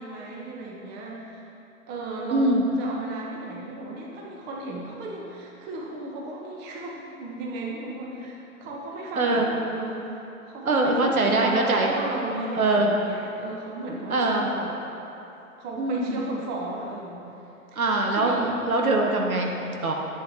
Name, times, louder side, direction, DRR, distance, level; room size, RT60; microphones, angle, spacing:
voice 1, 0.0-1.4 1.9-10.2 10.5-14.8 15.6-17.3 17.7-17.8 18.1-18.5, right 2 dB, 25° right, -2 dB, 1.0 m, -35 dB
voice 2, 2.3-2.6 9.2-9.5 10.6-11.9 12.5-13.0 14.1-14.5 15.8-16.2 17.7-19.9, right 2 dB, 75° right, 1 dB, 1.2 m, -23 dB
11.0 x 8.3 x 2.9 m, 2.9 s
figure-of-eight pair, 110°, 43 cm